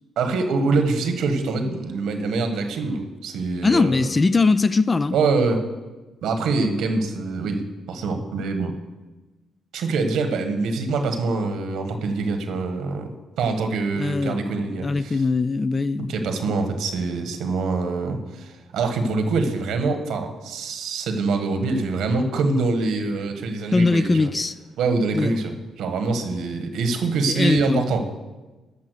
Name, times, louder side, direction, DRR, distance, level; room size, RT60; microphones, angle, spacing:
voice 1, 0.2-4.1 5.1-5.6 6.2-7.6 7.9-8.7 9.7-13.1 13.4-15.2 16.0-24.3 24.8-28.1, right 3 dB, 80° right, 1.4 m, -24 dB
voice 2, 3.6-5.2 13.9-16.2 23.7-24.6 25.1-25.4 27.3-27.9, left 3 dB, 30° left, 0.3 m, -21 dB
13.5 x 5.7 x 6.4 m
cardioid pair, 80°, 0 cm